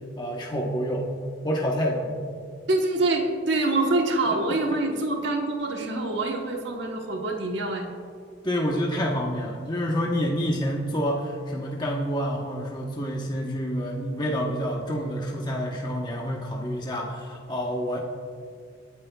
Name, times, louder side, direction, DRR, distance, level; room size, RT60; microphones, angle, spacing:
voice 1, 0.2-1.1 1.4-2.2 8.4-18.0, equal, 25° left, -2 dB, 1.0 m, -28 dB
voice 2, 2.7-7.9, right 2 dB, 75° right, 1 dB, 1.2 m, -25 dB
23.5 x 9.4 x 2.3 m, 2.2 s
head